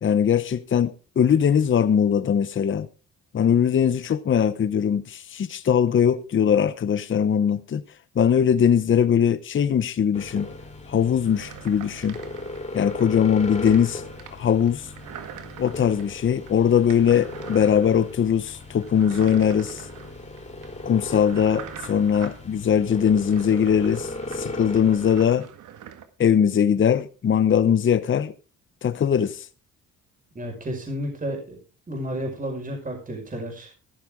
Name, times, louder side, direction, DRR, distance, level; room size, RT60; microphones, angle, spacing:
voice 1, 0.0-2.9 3.3-7.8 8.2-10.5 10.9-12.2 12.7-14.0 14.3-14.9 15.6-19.8 20.8-25.5 26.2-28.3 28.8-29.5, left 8 dB, 40° left, 0.9 m, -21 dB
sound 1, 10.1-25.2, left 2 dB, 25° left, 3.0 m, -37 dB
sound 2, 11.2-26.1, right 9 dB, 80° right, 1.8 m, -44 dB
voice 2, 30.4-31.6 31.9-33.8, equal, 25° right, 5.5 m, -32 dB
14.5 x 12.0 x 3.7 m
cardioid pair, 90°, 30 cm